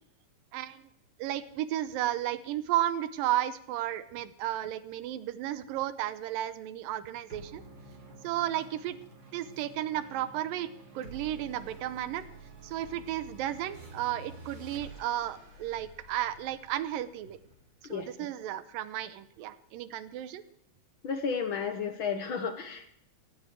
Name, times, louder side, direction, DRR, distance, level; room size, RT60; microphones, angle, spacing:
voice 1, 0.5-0.8 1.2-7.6 8.2-9.0 9.3-10.7 11.0-12.2 12.6-17.4 17.9-20.4, right 13 dB, 90° right, 13 dB, 2.5 m, -33 dB
sound 1, 7.3-18.1, right 3 dB, 35° right, 3.6 m, -50 dB
voice 2, 21.0-22.9, left 6 dB, 65° left, 7 dB, 1.2 m, -32 dB
17.5 x 17.5 x 4.6 m, 0.74 s
omnidirectional pair, 4.0 m